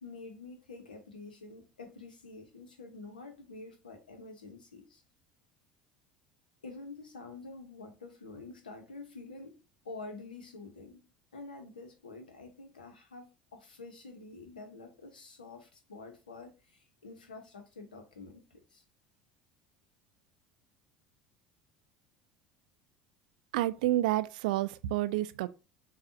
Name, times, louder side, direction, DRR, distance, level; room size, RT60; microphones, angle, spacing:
voice 1, 0.0-5.0 6.6-11.0 11.3-18.8, left 3 dB, 80° left, 0.9 m, -48 dB
voice 2, 23.5-25.5, right 15 dB, 65° right, 0.4 m, -29 dB
6.8 x 2.4 x 2.7 m
figure-of-eight pair, 70°, 5 cm